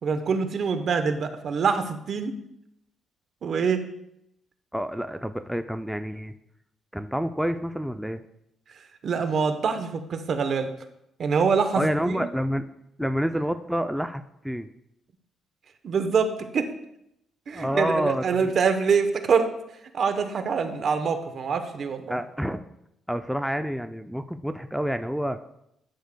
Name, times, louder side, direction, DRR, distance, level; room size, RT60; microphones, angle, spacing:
voice 1, 0.0-2.3 3.4-3.8 9.0-10.7 11.2-12.3 15.8-16.7 17.5-19.5 19.9-22.2, right 5 dB, 55° right, 8 dB, 0.8 m, -25 dB
voice 2, 4.7-6.3 6.9-8.2 11.8-12.6 13.0-14.7 17.5-18.5 22.1-22.6 23.1-25.4, equal, ahead, 8 dB, 0.3 m, -28 dB
11.5 x 6.5 x 2.2 m, 0.80 s
cardioid pair, 90°, 0 cm